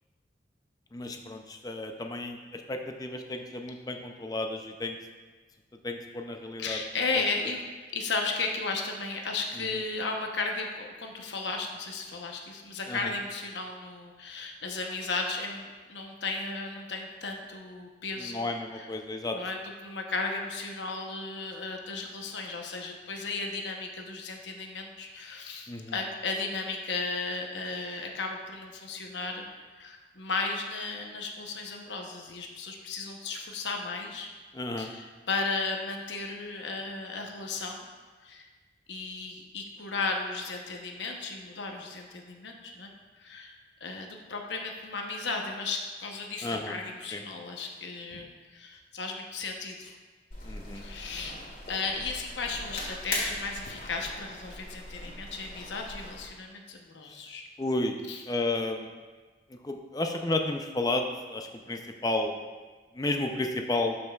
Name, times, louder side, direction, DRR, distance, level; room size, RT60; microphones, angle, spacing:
voice 1, 0.9-5.0 5.8-6.8 9.6-9.7 12.9-13.1 18.2-19.4 25.7-26.0 34.5-34.9 46.4-46.8 47.1-47.2 50.4-50.9 57.6-58.0 58.3-58.9 59.5-62.4 62.9-64.0, left 2 dB, 20° left, 4 dB, 0.5 m, -32 dB
voice 2, 6.6-7.6 7.9-18.4 18.7-18.9 19.3-19.6 19.8-29.5 29.8-34.3 34.8-37.9 38.2-38.5 38.9-42.9 43.2-43.5 43.8-49.9 50.7-51.4 51.7-57.4 58.1-58.2, left 3 dB, 80° left, 2 dB, 0.9 m, -35 dB
sound 1, 50.3-56.3, left 2 dB, 50° left, 1.6 m, -39 dB
12.0 x 5.4 x 2.3 m, 1.4 s
head